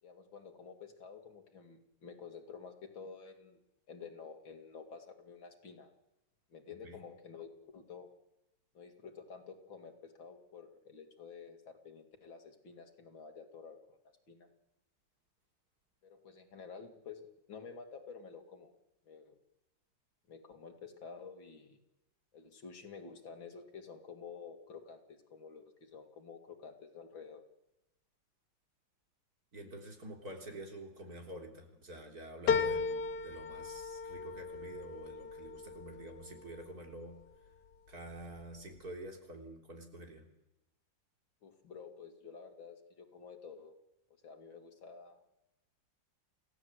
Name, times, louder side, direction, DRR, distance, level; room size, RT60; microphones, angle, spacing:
voice 1, 0.0-3.6 3.9-5.9 6.5-8.1 8.7-14.0 14.3-14.5 16.0-18.7 19.1-19.4 20.3-21.8 22.3-27.4 41.4-43.7 44.2-45.2, left 5 dB, 80° left, 5 dB, 3.1 m, -50 dB
voice 2, 29.5-37.2 37.9-40.3, right 1 dB, 50° right, 2 dB, 4.0 m, -48 dB
sound 1, 32.5-37.2 37.7-38.4 38.8-38.9, left 5 dB, 60° left, 1.5 m, -36 dB
28.5 x 16.5 x 8.1 m, 0.93 s
omnidirectional pair, 2.1 m